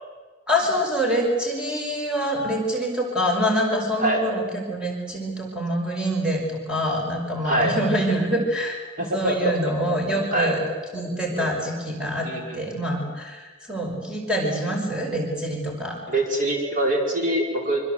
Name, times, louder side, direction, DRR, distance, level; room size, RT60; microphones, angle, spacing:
voice 1, 0.5-6.4 6.7-10.6 10.9-12.3 12.5-16.0, equal, 5° right, -1 dB, 5.2 m, -25 dB
voice 2, 7.4-7.7 9.0-9.6 10.3-10.5 11.4-11.5 12.2-12.6 16.1-17.8, right 1 dB, 45° right, 1 dB, 5.5 m, -24 dB
26.0 x 24.5 x 8.0 m, 1.3 s
head